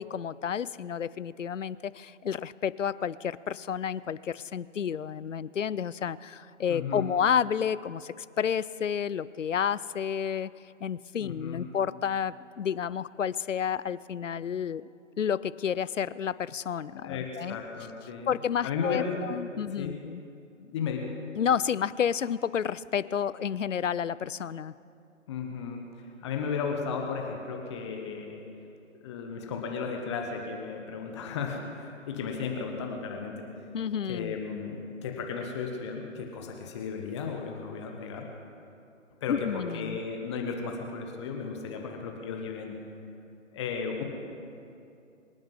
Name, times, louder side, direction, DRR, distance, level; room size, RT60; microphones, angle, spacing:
voice 1, 0.0-10.5 10.8-14.8 15.2-17.6 18.3-20.2 21.4-24.7 33.7-34.4 39.3-40.0, left 8 dB, 70° left, 18 dB, 0.6 m, -30 dB
voice 2, 6.7-7.0 11.2-11.6 17.0-18.3 18.6-19.2 19.5-19.9 20.6-21.1 25.3-25.8 26.2-28.4 28.9-33.5 34.1-38.3 39.2-42.8 43.5-44.0, left 5 dB, 20° left, 2 dB, 1.2 m, -35 dB
24.5 x 9.3 x 5.6 m, 2.6 s
figure-of-eight pair, 135°, 39 cm